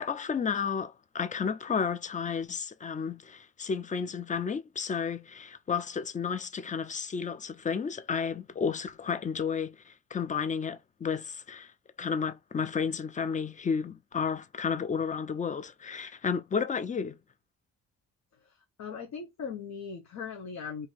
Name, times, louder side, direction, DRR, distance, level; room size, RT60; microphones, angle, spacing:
voice 1, 0.0-11.7 12.0-17.2, left 6 dB, 25° left, 0.4 m, -32 dB
voice 2, 18.4-20.9, left 6 dB, 65° left, 0.8 m, -39 dB
2.8 x 2.6 x 3.9 m
cardioid pair, 90°, 30 cm